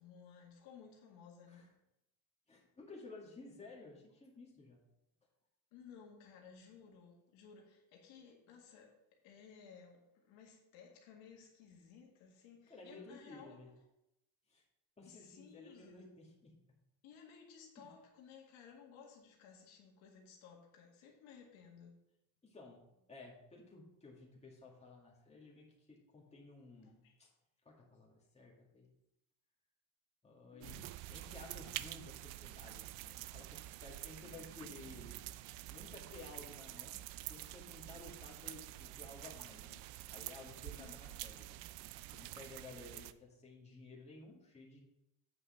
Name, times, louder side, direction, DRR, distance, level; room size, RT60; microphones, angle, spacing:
voice 1, 0.0-1.7 5.7-9.0 9.2-13.6 15.1-16.1 17.0-22.0 26.8-27.2 30.5-30.9 34.2-35.1 40.8-41.4, left 6 dB, 75° left, 0 dB, 1.9 m, -58 dB
voice 2, 2.5-4.8 12.7-13.7 14.5-14.6 15.0-16.5 17.8-17.9 22.4-22.8 23.1-27.3 27.6-28.9 30.2-35.2 35.7-41.6 42.1-44.8, left 3 dB, 15° left, -3 dB, 2.3 m, -55 dB
sound 1, 30.6-43.1, right 16 dB, 75° right, 0.6 m, -48 dB
8.3 x 5.5 x 5.1 m, 0.85 s
cardioid pair, 120°, 46 cm